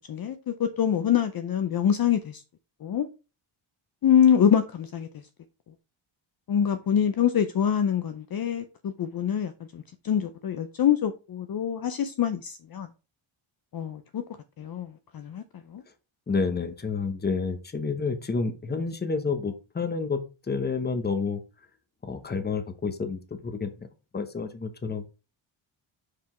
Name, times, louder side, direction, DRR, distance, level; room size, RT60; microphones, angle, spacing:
voice 1, 0.0-2.4 2.8-3.1 4.0-5.1 6.5-12.9 13.7-14.2 14.6-15.4 15.7-15.8, left 9 dB, 45° left, 0.6 m, -25 dB
voice 2, 16.3-20.2 20.5-21.4 22.0-23.7 24.1-25.0, left 4 dB, 20° left, 0.9 m, -29 dB
5.8 x 4.9 x 4.3 m
wide cardioid pair, 150°, 49 cm